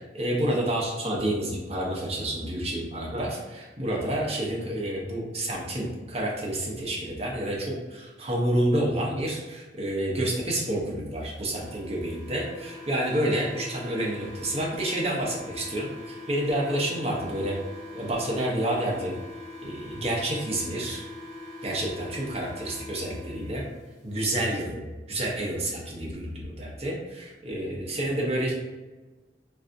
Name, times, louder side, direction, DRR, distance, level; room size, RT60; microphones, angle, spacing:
voice 1, 0.1-17.5 17.9-19.1 19.6-21.0 21.6-23.6 24.0-24.8 25.1-28.5, right 1 dB, 35° right, -2 dB, 0.6 m, -29 dB
sound 1, 11.5-23.5, left 2 dB, ahead, 1.4 m, -42 dB
3.3 x 2.5 x 2.5 m, 1.2 s
head